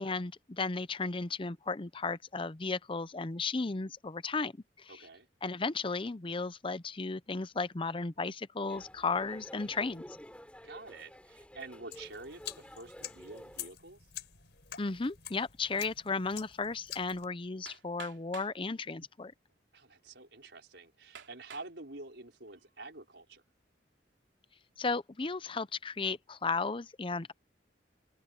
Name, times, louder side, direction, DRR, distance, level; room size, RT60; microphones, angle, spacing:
voice 1, 0.0-4.5 4.8-5.1 5.4-10.2 14.8-19.3 24.8-27.3, left 4 dB, 30° left, 0.7 m, -34 dB
voice 2, 4.9-5.3 10.6-14.0 19.7-23.4, right 2 dB, 70° right, 5.3 m, -48 dB
sound 1, 8.7-13.7, equal, 5° left, 4.6 m, -51 dB
sound 2, 11.9-17.3, left 11 dB, 70° left, 5.4 m, -47 dB
Hammer, 17.7-18.6 19.5-19.6 20.2-20.3 21.1-21.7 22.3-22.8, right 7 dB, 90° right, 3.1 m, -50 dB
head